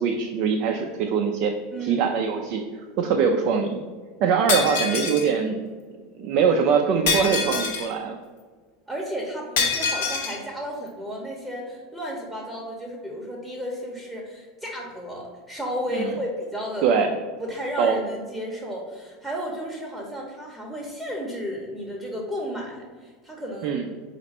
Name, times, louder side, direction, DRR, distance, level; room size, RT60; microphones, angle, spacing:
voice 1, 0.0-1.5 1.8-2.6 3.0-3.8 4.2-5.6 6.2-8.2 15.9-16.1 16.8-17.1 17.8-18.0 23.6-23.9, right 6 dB, 60° right, 3 dB, 0.4 m, -22 dB
voice 2, 1.7-2.1 8.9-16.9 17.4-23.7, equal, ahead, -3 dB, 0.8 m, -33 dB
Shatter, 4.5-5.3 7.1-7.9 9.6-10.4, left 5 dB, 75° left, 0.8 m, -25 dB
4.2 x 2.5 x 4.1 m, 1.5 s
hypercardioid pair, 105°, 0 cm